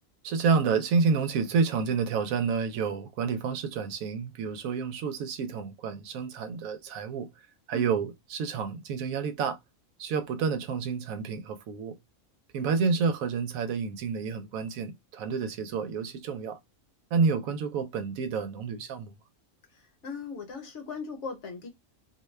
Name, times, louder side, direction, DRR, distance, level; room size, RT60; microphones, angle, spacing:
voice 1, 0.2-7.3 7.7-9.6 10.0-12.0 12.5-16.6 17.1-19.1, right 5 dB, 85° right, 1.0 m, -29 dB
voice 2, 19.7-21.7, left 4 dB, 60° left, 1.1 m, -39 dB
2.5 x 2.2 x 3.1 m
omnidirectional pair, 1.4 m